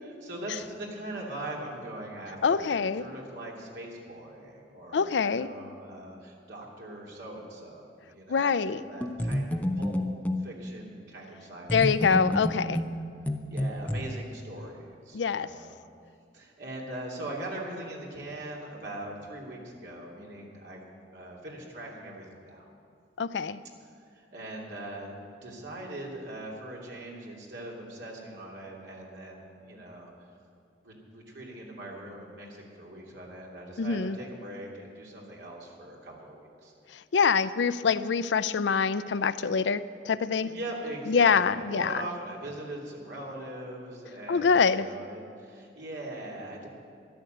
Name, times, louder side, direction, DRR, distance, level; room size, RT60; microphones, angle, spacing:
voice 1, 0.2-9.9 10.4-12.0 12.7-12.8 13.5-15.7 16.3-20.8 21.1-22.7 24.1-30.1 30.8-36.7 40.4-46.7, right 1 dB, 80° right, -3 dB, 2.9 m, -41 dB
voice 2, 2.4-3.0 4.9-5.5 8.3-8.8 11.7-12.8 15.1-15.5 23.2-23.6 33.8-34.2 37.1-40.5 41.1-41.9 44.3-44.9, left 5 dB, 85° left, 14 dB, 0.5 m, -25 dB
sound 1, 9.0-10.5 11.7-14.0, left 1 dB, 10° left, 0.6 m, -29 dB
13.0 x 11.0 x 8.0 m, 2.3 s
head